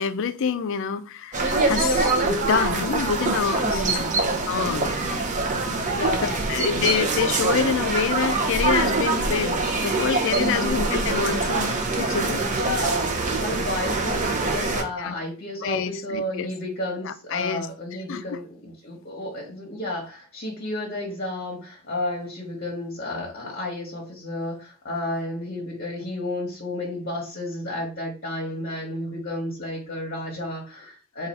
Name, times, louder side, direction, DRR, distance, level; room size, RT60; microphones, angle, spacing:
voice 1, 0.0-3.8 4.5-4.9 6.5-12.5 15.0-15.2 15.6-16.5 17.0-17.7 18.1-18.4, left 6 dB, 60° left, 0.4 m, -27 dB
sound 1, 1.3-14.8, right 3 dB, 35° right, 0.6 m, -24 dB
voice 2, 3.6-4.1 5.9-6.5 10.5-10.9 12.4-31.3, left 1 dB, 45° left, 1.0 m, -32 dB
3.9 x 2.4 x 4.3 m
head